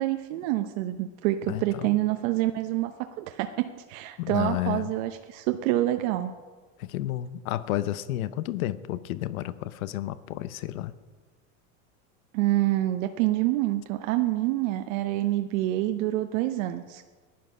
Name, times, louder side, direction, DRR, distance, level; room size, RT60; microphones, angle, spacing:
voice 1, 0.0-2.9 3.2-6.3 12.3-17.0, right 15 dB, 70° right, 7 dB, 0.9 m, -27 dB
voice 2, 1.5-2.0 4.2-4.9 6.8-10.9, left 14 dB, 85° left, 16 dB, 0.8 m, -31 dB
14.5 x 10.5 x 5.5 m, 1.4 s
supercardioid pair, 120°, 41 cm